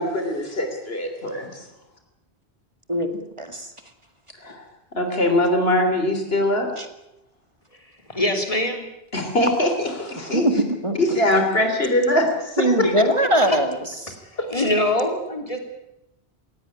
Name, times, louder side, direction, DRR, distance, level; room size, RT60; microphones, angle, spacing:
voice 1, 0.0-1.6 4.4-4.6 4.9-6.7 9.1-10.5 11.0-12.9, left 1 dB, 65° left, 5 dB, 3.7 m, -22 dB
voice 2, 2.9-3.7 6.8-6.9 10.3-11.2 12.6-13.8 14.0-14.1, right 1 dB, 30° right, 7 dB, 2.1 m, -21 dB
voice 3, 8.1-8.8 13.4-13.6 14.3-15.6, left 1 dB, 35° left, 5 dB, 3.3 m, -23 dB
18.0 x 17.0 x 9.9 m, 0.86 s
omnidirectional pair, 1.1 m